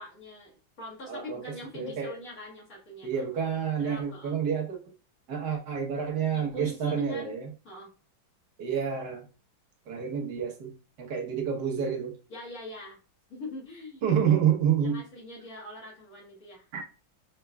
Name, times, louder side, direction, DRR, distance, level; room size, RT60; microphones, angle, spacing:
voice 1, 0.0-3.3 3.8-4.3 6.3-7.3 7.6-7.9 12.3-13.0 13.3-14.0 14.8-16.7, left 1 dB, 45° left, -4 dB, 2.1 m, -43 dB
voice 2, 1.1-1.4 1.7-2.1 3.0-4.8 5.3-7.5 8.6-9.3 9.9-12.2 14.0-15.0 16.7-16.8, right 8 dB, 60° right, -2 dB, 1.6 m, -28 dB
5.1 x 4.4 x 2.3 m, 0.34 s
omnidirectional pair, 2.2 m